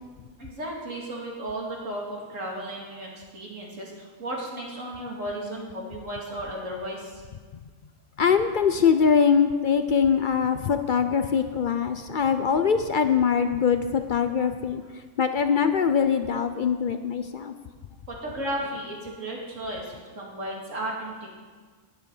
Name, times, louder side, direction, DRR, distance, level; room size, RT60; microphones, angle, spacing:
voice 1, 0.4-7.2 18.1-21.3, right 1 dB, 70° right, -2 dB, 2.6 m, -34 dB
voice 2, 8.2-14.8 15.2-17.5, left 6 dB, 60° left, 9 dB, 0.5 m, -22 dB
11.0 x 10.5 x 5.4 m, 1.5 s
omnidirectional pair, 1.4 m